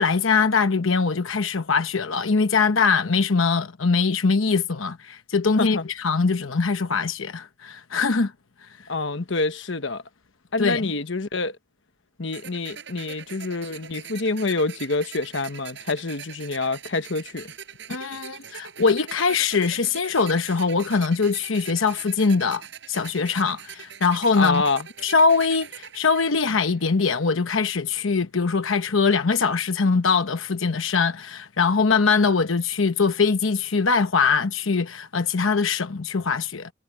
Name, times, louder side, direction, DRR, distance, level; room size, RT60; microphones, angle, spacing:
voice 1, 0.0-8.3 10.6-10.9 17.9-22.6 22.9-24.6 25.0-36.7, left 4 dB, 85° left, 1.0 m, -22 dB
voice 2, 8.9-10.0 10.5-11.6 12.2-17.5 24.4-24.9, left 3 dB, 65° left, 1.2 m, -26 dB
sound 1, 12.3-27.2, right 8 dB, 65° right, 5.3 m, -42 dB
head